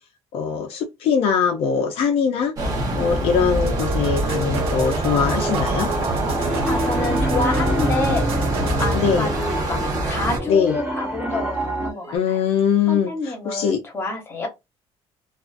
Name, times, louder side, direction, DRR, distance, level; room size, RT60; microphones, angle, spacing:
voice 1, 0.3-2.5 2.9-5.9 8.9-9.3 10.5-10.7 12.1-13.1 13.5-13.8, left 7 dB, 65° left, 0.4 m, -21 dB
sound 1, 2.6-10.4, right 1 dB, 35° right, 0.9 m, -25 dB
sound 2, 3.6-12.2, right 2 dB, 60° right, 1.1 m, -30 dB
Piano, 6.3-11.9, equal, 10° right, 0.6 m, -28 dB
voice 2, 6.4-8.5 8.8-9.8 10.1-12.5 12.9-14.5, left 2 dB, 20° left, 0.8 m, -28 dB
2.4 x 2.3 x 2.4 m
cardioid pair, 165°, 11 cm